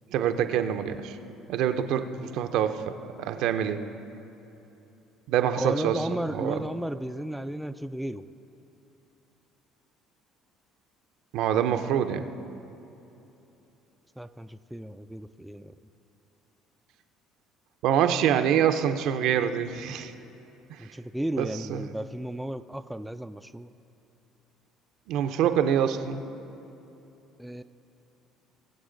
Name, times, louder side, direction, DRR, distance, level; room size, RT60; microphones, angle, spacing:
voice 1, 0.1-1.2 1.5-3.8 5.3-6.6 11.3-12.3 17.8-20.1 20.7-20.9 21.4-21.8 25.1-26.2, right 9 dB, 70° right, 8 dB, 0.6 m, -26 dB
voice 2, 5.6-8.3 14.2-15.7 20.8-23.7 27.4-27.6, right 1 dB, 5° right, 9 dB, 0.4 m, -34 dB
21.5 x 7.9 x 3.9 m, 3.0 s
hypercardioid pair, 70°, 0 cm